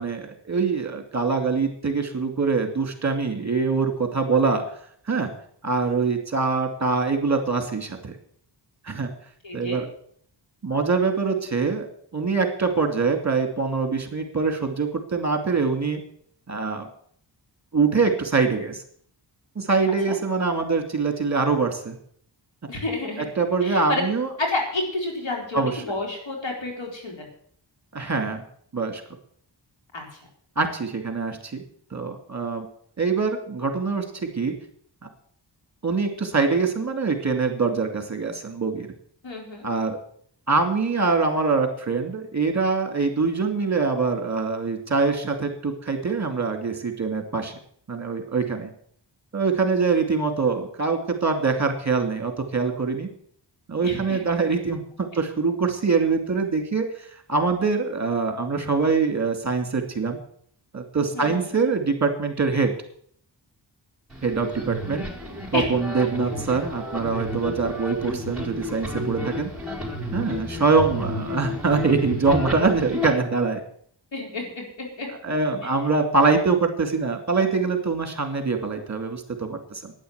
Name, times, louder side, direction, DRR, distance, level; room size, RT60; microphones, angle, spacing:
voice 1, 0.0-4.6 5.1-5.3 5.6-8.1 8.8-9.1 9.5-9.9 10.6-11.9 12.1-16.0 16.5-16.9 17.7-18.8 19.6-22.0 23.2-24.3 25.5-25.8 27.9-28.4 28.7-29.0 30.6-31.6 31.9-32.7 33.0-34.5 35.8-38.9 39.6-40.0 40.5-47.5 47.9-48.7 49.3-53.1 53.7-60.2 60.7-62.7 64.2-65.0 65.5-69.5 70.1-73.6 75.2-79.9, right 4 dB, 35° right, 6 dB, 2.4 m, -24 dB
voice 2, 9.4-9.8 20.1-20.2 22.7-23.2 23.6-24.0 24.4-27.3 29.9-30.0 39.2-39.7 53.8-54.2 61.1-61.6 65.5-65.7 70.2-70.6 74.1-75.1 75.6-75.7, left 2 dB, 85° left, 0 dB, 4.5 m, -30 dB
sound 1, 64.1-73.1, left 1 dB, ahead, 5.0 m, -32 dB
11.5 x 9.8 x 8.0 m, 0.62 s
wide cardioid pair, 105°, 44 cm